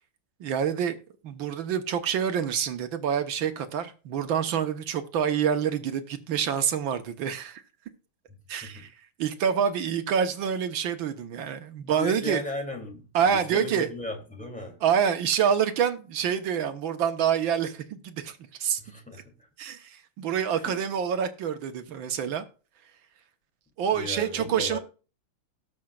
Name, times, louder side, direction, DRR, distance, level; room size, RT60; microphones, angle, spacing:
voice 1, 0.4-1.0 1.2-7.6 8.5-8.9 9.2-12.4 13.1-13.9 14.8-18.8 19.6-22.4 23.8-24.8, right 8 dB, 70° right, 1.7 m, -27 dB
voice 2, 11.8-14.8 18.8-19.5 20.5-20.8 23.9-24.8, left 2 dB, 5° left, 2.3 m, -37 dB
18.5 x 6.5 x 2.4 m
omnidirectional pair, 2.4 m